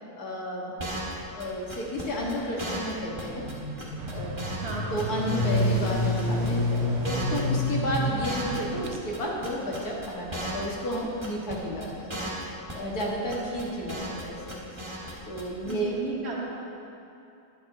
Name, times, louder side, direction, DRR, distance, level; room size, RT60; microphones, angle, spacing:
voice 1, 0.2-0.7 1.3-3.4 4.1-4.5 4.9-12.2 12.7-14.6 15.3-15.9, equal, 65° left, -4 dB, 2.4 m, -32 dB
sound 1, 0.8-1.1 1.4-1.5 1.7-2.0 2.3-2.4 2.6-2.9 3.2-3.3 3.5-3.6 3.8-4.7 5.0-5.9 6.2-6.5 6.7-8.9 9.1-10.7 10.9-11.0 11.2-11.5 11.8-11.9 12.1-12.4 12.7-13.0 13.3-14.2 14.5-15.1 15.4-15.5 15.7-15.8, equal, 15° right, 1.7 m, -36 dB
sound 2, 3.1-8.2, left 1 dB, 35° left, 2.8 m, -28 dB
sound 3, 4.0-9.0, right 6 dB, 65° right, 0.8 m, -37 dB
voice 2, 4.6-5.0 15.6-16.5, right 3 dB, 40° right, -3 dB, 1.7 m, -34 dB
20.0 x 8.2 x 3.0 m, 2.7 s
omnidirectional pair, 1.7 m